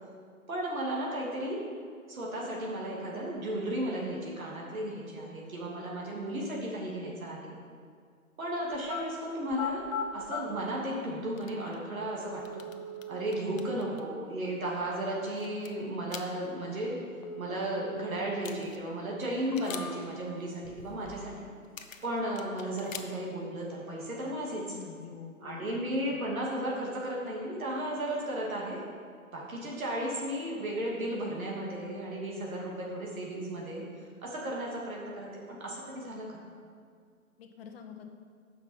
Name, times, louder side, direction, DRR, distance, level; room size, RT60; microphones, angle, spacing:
voice 1, 0.5-1.6 2.1-7.6 8.4-12.6 13.1-17.0 17.4-21.5 22.0-24.8 25.4-28.8 29.3-33.8 34.2-36.3, right 1 dB, 70° right, -4 dB, 2.6 m, -34 dB
sound 1, 8.7-9.0 9.5-10.4 11.4-11.5 12.2-13.3 17.2-18.3 18.6-18.7 19.3-20.2 20.6-21.4 21.6-22.2, left 3 dB, 25° left, 0.5 m, -39 dB
sound 2, 11.4-11.9 12.2-14.0 14.7-14.8 15.1-16.5 18.1-18.2 18.4-18.9 19.2-20.1 21.6-23.4, left 7 dB, 65° left, 0.9 m, -46 dB
voice 2, 13.4-13.9 24.7-26.1 37.4-38.1, left 6 dB, 45° left, 5 dB, 1.2 m, -47 dB
9.5 x 6.4 x 5.5 m, 2.1 s
figure-of-eight pair, 135°, 43 cm